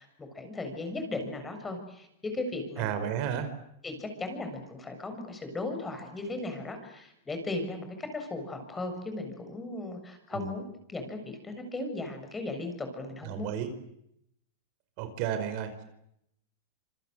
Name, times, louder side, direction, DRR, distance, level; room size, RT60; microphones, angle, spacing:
voice 1, 0.0-2.9 3.8-10.6 10.9-13.5, left 2 dB, 15° left, 6 dB, 7.1 m, -37 dB
voice 2, 2.8-3.5 10.3-10.4 13.2-13.7 15.0-15.8, right 9 dB, 50° right, 9 dB, 5.0 m, -32 dB
27.0 x 25.0 x 8.1 m, 0.76 s
supercardioid pair, 135°, 0 cm